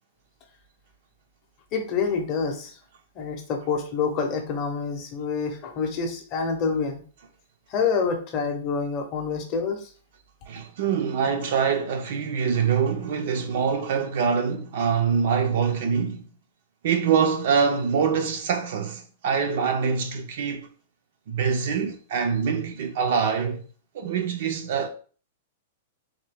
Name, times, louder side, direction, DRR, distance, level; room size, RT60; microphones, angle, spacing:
voice 1, 1.7-2.7 3.2-7.0 7.7-9.9, left 5 dB, 25° left, 0.7 m, -27 dB
voice 2, 10.5-16.2 16.8-20.7 21.3-23.6 23.9-24.9, right 6 dB, 50° right, 0.5 m, -24 dB
3.5 x 2.7 x 3.4 m
supercardioid pair, 180°, 0 cm